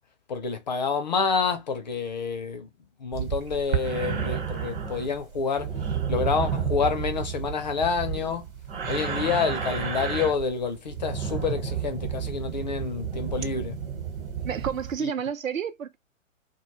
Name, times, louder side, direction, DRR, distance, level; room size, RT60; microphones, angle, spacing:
voice 1, 0.3-2.7 3.0-5.7 6.1-8.4 8.9-13.8 15.0-15.1, left 5 dB, 35° left, 0.4 m, -28 dB
sound 1, 3.1-14.9, right 7 dB, 45° right, 1.0 m, -31 dB
voice 2, 14.4-16.0, right 7 dB, 80° right, 0.6 m, -30 dB
2.2 x 2.1 x 2.9 m
figure-of-eight pair, 130°, 39 cm